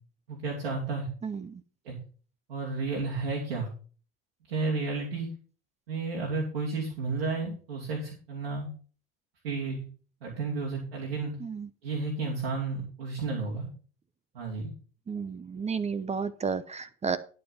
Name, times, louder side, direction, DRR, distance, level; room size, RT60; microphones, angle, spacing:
voice 1, 0.3-1.1 1.8-1.9 2.5-3.7 4.5-5.3 5.9-8.7 9.4-9.8 10.2-11.3 11.8-13.7 14.3-14.7, right 3 dB, 90° right, -3 dB, 2.9 m, -32 dB
voice 2, 1.2-1.6 11.4-11.7 15.1-17.2, right 5 dB, 20° right, 15 dB, 0.8 m, -32 dB
11.0 x 5.5 x 5.8 m, 0.40 s
hypercardioid pair, 80°, 29 cm